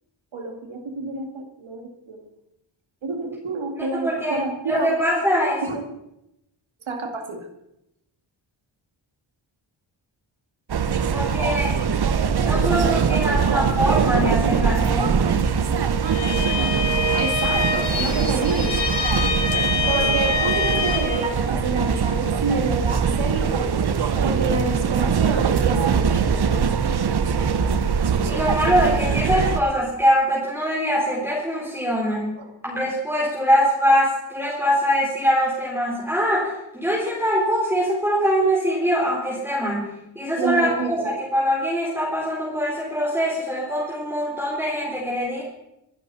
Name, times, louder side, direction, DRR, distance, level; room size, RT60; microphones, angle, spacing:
voice 1, 0.3-2.3 3.0-5.0 5.6-5.8 6.9-7.5 17.2-18.8 19.9-23.9 24.2-26.6 32.4-32.5 40.4-41.2, right 3 dB, 70° right, 4 dB, 2.5 m, -28 dB
voice 2, 3.8-4.4 4.7-5.6 11.1-11.7 12.4-15.4 28.2-32.3 32.6-39.9 40.1-41.0 41.3-45.4, equal, 5° right, -6 dB, 4.1 m, -23 dB
sound 1, 10.7-29.6, right 6 dB, 55° right, 1.0 m, -22 dB
Bowed string instrument, 16.0-21.3, left 4 dB, 60° left, 3.0 m, -25 dB
24.5 x 11.5 x 4.3 m, 0.87 s
wide cardioid pair, 140°, 48 cm